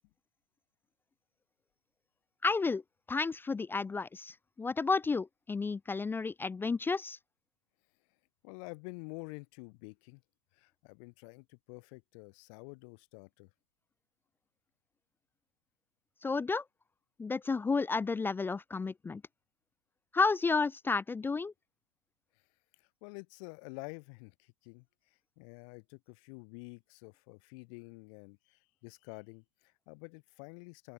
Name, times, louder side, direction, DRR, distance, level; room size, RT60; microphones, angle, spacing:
voice 1, 2.4-2.8 3.1-7.2 16.2-16.6 17.2-19.2 20.1-21.5, left 4 dB, 10° left, 0.5 m, -31 dB
voice 2, 8.4-10.2 10.5-13.5 22.8-30.9, left 35 dB, 60° left, 4.8 m, -49 dB
open air
supercardioid pair, 130°, 19 cm